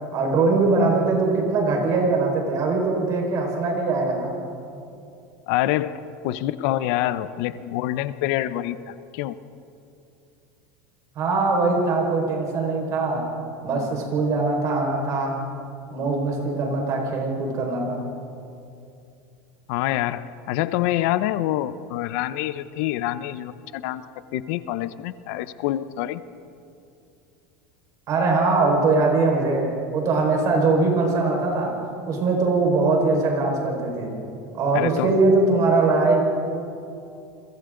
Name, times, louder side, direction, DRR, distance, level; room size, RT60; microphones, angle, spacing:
voice 1, 0.1-4.3 11.2-13.3 13.6-15.4 15.9-18.1 28.1-31.8 32.1-34.1 34.5-36.2, right 3 dB, 45° right, 1 dB, 5.1 m, -21 dB
voice 2, 5.5-9.4 19.7-24.0 24.3-26.2 34.7-35.1, left 14 dB, 70° left, 14 dB, 0.8 m, -26 dB
30.0 x 22.5 x 3.9 m, 2.6 s
supercardioid pair, 140°, 8 cm